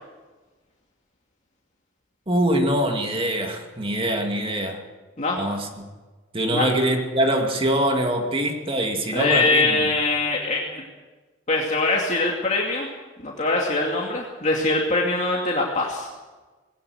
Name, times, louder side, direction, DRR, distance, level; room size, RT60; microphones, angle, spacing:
voice 1, 2.3-4.8 5.4-5.9 6.3-9.9, right 1 dB, 25° right, 4 dB, 2.3 m, -23 dB
voice 2, 9.1-10.8 11.5-12.9 13.2-16.1, left 2 dB, 35° left, -2 dB, 2.5 m, -23 dB
20.5 x 17.5 x 8.0 m, 1.3 s
head